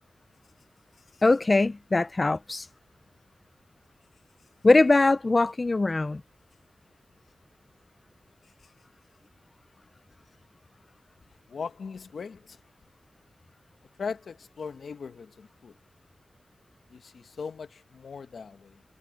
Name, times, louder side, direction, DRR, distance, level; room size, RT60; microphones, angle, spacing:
voice 1, 1.2-2.7 4.6-6.2, left 2 dB, 30° left, 0.4 m, -21 dB
voice 2, 11.5-12.6 14.0-15.7 16.9-18.8, left 5 dB, 80° left, 1.0 m, -39 dB
wide cardioid pair, 150°, 0 cm